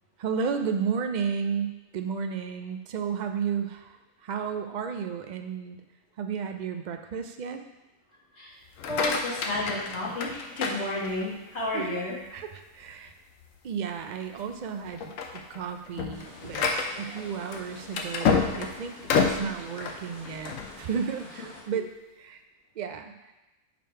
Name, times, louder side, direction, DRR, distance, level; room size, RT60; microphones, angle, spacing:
voice 1, 0.2-5.8 6.2-7.6 11.7-12.0 12.3-13.1 13.6-16.7 17.0-22.4 22.8-23.3, right 6 dB, 80° right, 6 dB, 0.4 m, -33 dB
sound 1, 8.7-11.5 12.0-12.4 12.9-13.0 13.4-13.6 14.2-14.5 14.9-20.7, left 5 dB, 90° left, 1.1 m, -29 dB
voice 2, 8.9-12.1, left 2 dB, 60° left, -6 dB, 1.9 m, -31 dB
sound 2, 16.1-21.6, left 1 dB, 45° left, 1.6 m, -48 dB
5.1 x 5.1 x 4.5 m, 1.0 s
omnidirectional pair, 1.3 m